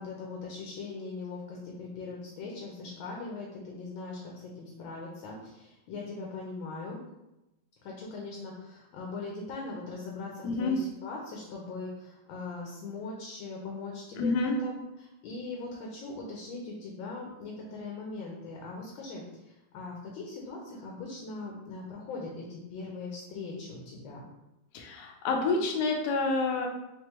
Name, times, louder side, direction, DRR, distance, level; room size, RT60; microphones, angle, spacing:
voice 1, 0.0-7.0 7.8-19.2 19.7-24.3, left 3 dB, 85° left, -2 dB, 1.4 m, -40 dB
voice 2, 10.4-10.8 14.1-14.6 24.7-26.7, left 3 dB, 70° left, 2 dB, 1.0 m, -28 dB
3.5 x 2.9 x 3.0 m, 0.94 s
omnidirectional pair, 2.1 m